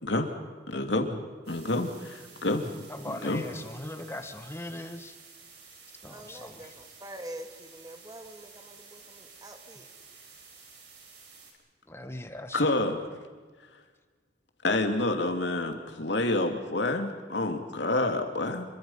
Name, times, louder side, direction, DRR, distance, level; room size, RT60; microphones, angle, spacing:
voice 1, 0.7-1.2 1.5-2.7 3.2-3.4 12.5-13.0 14.6-18.7, left 2 dB, 80° left, 5 dB, 2.8 m, -28 dB
sound 1, 1.4-11.5, right 5 dB, 70° right, 5.8 m, -52 dB
voice 2, 2.9-5.1 6.0-6.7 11.9-12.7, left 1 dB, 15° left, 7 dB, 1.7 m, -40 dB
voice 3, 6.1-9.9, right 1 dB, 20° right, 5 dB, 2.4 m, -45 dB
27.5 x 24.0 x 5.7 m, 1.5 s
head